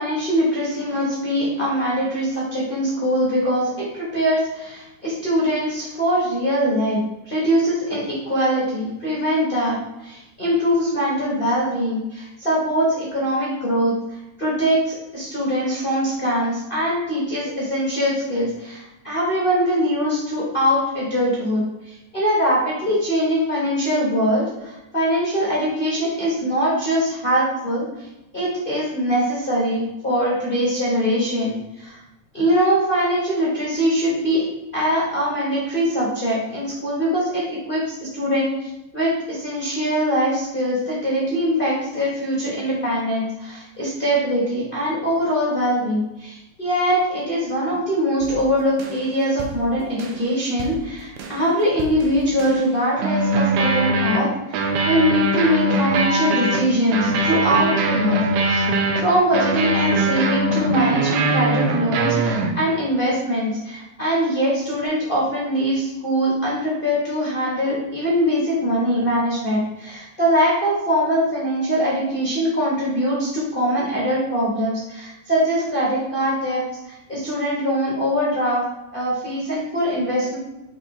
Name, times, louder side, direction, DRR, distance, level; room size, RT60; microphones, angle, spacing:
voice 1, 0.0-9.8 10.0-13.9 14.4-27.8 28.3-32.0 32.3-34.4 34.7-37.4 37.7-58.2 58.5-78.6 78.9-80.4, equal, 35° left, -7 dB, 0.8 m, -22 dB
sound 1, 48.2-48.4 48.8-49.1 49.4-49.6 50.0-50.3 50.6-50.8 51.2-51.5 51.8-52.7 53.0-62.8, right 2 dB, 75° right, 2.1 m, -22 dB
5.8 x 4.5 x 4.2 m, 0.94 s
omnidirectional pair, 3.5 m